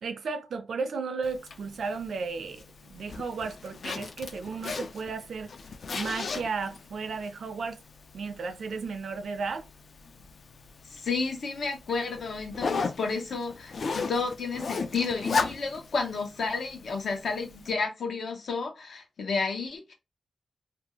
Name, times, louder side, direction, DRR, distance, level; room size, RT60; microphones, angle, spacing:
voice 1, 0.0-5.5 5.9-7.8 8.1-9.6, right 4 dB, 85° right, 0.4 m, -34 dB
Zipper (clothing), 1.2-17.7, left 4 dB, 60° left, 0.3 m, -37 dB
voice 2, 10.8-19.9, left 4 dB, 80° left, 0.8 m, -31 dB
2.6 x 2.2 x 2.9 m
wide cardioid pair, 115°, 0 cm